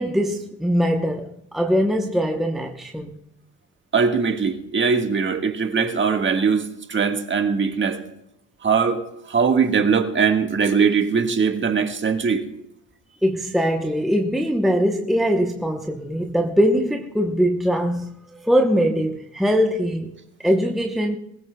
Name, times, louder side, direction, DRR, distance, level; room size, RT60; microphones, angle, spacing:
voice 1, 0.0-3.1 13.2-18.2 18.4-20.1 20.4-21.2, equal, ahead, 0.9 m, -21 dB
voice 2, 3.9-8.0 8.6-12.5, right 5 dB, 25° right, 1.6 m, -21 dB
22.5 x 15.0 x 2.3 m
supercardioid pair, 105°, 43 cm